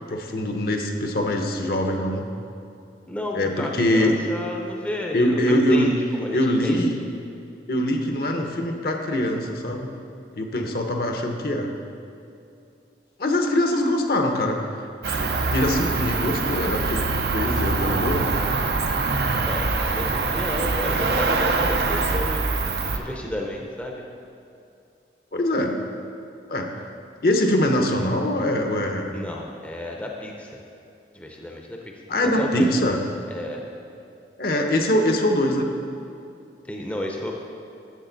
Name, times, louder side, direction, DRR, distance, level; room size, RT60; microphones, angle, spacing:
voice 1, 0.1-2.3 3.3-4.2 5.1-5.9 6.3-7.0 7.7-9.9 10.3-11.7 13.2-14.6 15.1-17.1 17.3-18.3 25.3-25.8 26.5-26.7 27.2-29.2 32.1-33.0 34.4-35.7, left 1 dB, 55° left, 3 dB, 0.8 m, -23 dB
voice 2, 3.1-6.8 19.4-22.4 22.9-24.0 29.1-30.6 31.1-31.9 32.4-32.7 33.3-33.6 36.7-37.3, left 1 dB, 10° left, 0 dB, 0.6 m, -31 dB
Cricket, 15.0-23.0, right 3 dB, 60° right, 0.6 m, -24 dB
10.5 x 7.7 x 4.0 m, 2.6 s
head